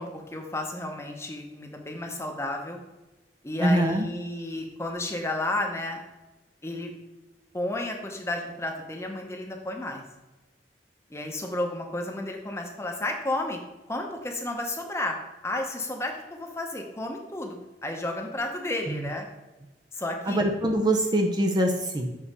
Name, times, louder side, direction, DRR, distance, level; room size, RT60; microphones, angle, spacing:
voice 1, 0.0-2.8 3.4-6.0 6.6-6.9 7.5-10.0 11.1-13.6 13.9-15.2 15.4-17.6 17.8-19.3 19.9-20.4, left 1 dB, 15° left, 2 dB, 0.9 m, -32 dB
voice 2, 3.6-4.1 18.9-19.0 20.3-22.1, right 1 dB, 25° right, 3 dB, 0.6 m, -24 dB
7.3 x 4.2 x 5.5 m, 1.1 s
head